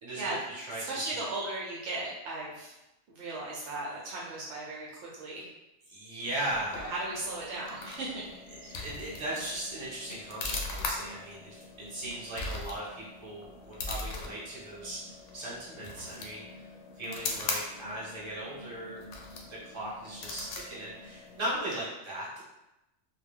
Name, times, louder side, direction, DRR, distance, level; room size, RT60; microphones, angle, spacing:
voice 1, 0.0-1.2 5.9-6.9 8.8-16.7 17.0-19.0 19.5-22.4, right 1 dB, 25° right, -7 dB, 0.9 m, -38 dB
voice 2, 0.7-2.8 3.1-5.5 6.7-8.3 8.6-8.8, right 2 dB, 70° right, -4 dB, 0.8 m, -37 dB
sound 1, 6.2-21.8, left 3 dB, 90° left, 0.9 m, -41 dB
2.3 x 2.2 x 3.4 m, 0.94 s
omnidirectional pair, 1.2 m